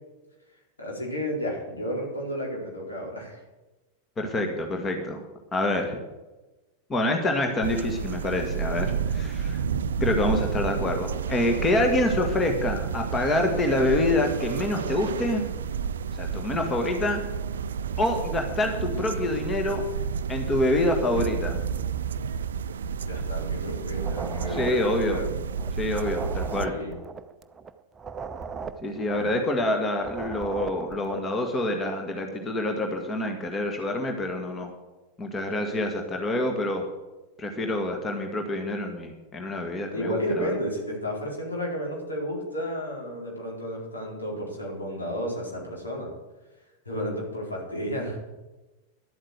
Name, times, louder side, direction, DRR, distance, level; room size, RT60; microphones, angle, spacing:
voice 1, 0.8-3.4 23.0-25.3 26.4-27.0 29.1-29.4 39.9-46.1 46.9-48.2, equal, 75° left, -2 dB, 4.3 m, -32 dB
voice 2, 4.2-5.2 5.5-6.0 6.9-9.6 10.0-15.4 16.1-17.2 18.0-19.8 20.3-21.6 24.5-25.2 25.8-26.7 28.8-34.7 35.2-36.9 37.4-40.6, left 1 dB, 20° left, 3 dB, 1.8 m, -26 dB
sound 1, 7.6-26.7, right 7 dB, 65° right, 0.5 m, -30 dB
sound 2, 24.0-25.7 26.0-29.7 30.0-31.3, right 5 dB, 15° right, 0.7 m, -38 dB
12.0 x 8.6 x 8.2 m, 1.1 s
figure-of-eight pair, 90°, 0 cm